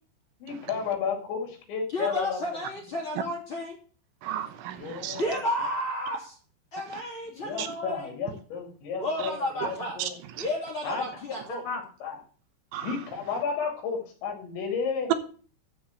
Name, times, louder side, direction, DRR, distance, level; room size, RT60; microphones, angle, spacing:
voice 1, 0.4-2.6 4.7-5.4 7.3-10.2 10.8-12.2 12.8-15.1, left 5 dB, 75° left, 4.8 m, -33 dB
voice 2, 1.9-3.8 5.2-6.3 6.7-8.1 9.0-10.0 10.4-11.6, left 1 dB, 35° left, 2.8 m, -32 dB
voice 3, 4.2-5.2 6.9-7.0 7.6-7.7 10.0-10.5 12.7-13.0, right 11 dB, 85° right, 3.4 m, -35 dB
12.5 x 4.3 x 8.2 m
omnidirectional pair, 5.3 m